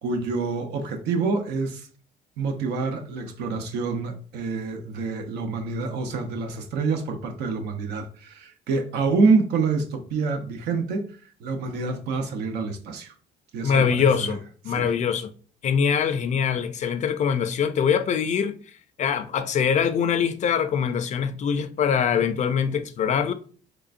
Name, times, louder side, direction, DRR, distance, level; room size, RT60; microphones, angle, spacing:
voice 1, 0.0-1.9 2.4-11.1 11.4-13.1 13.5-14.4 14.7-14.9, right 4 dB, 80° right, 0.8 m, -27 dB
voice 2, 13.6-15.3 15.6-18.6 19.0-23.3, left 7 dB, 45° left, 0.4 m, -23 dB
3.6 x 3.4 x 2.5 m
cardioid pair, 110°, 17 cm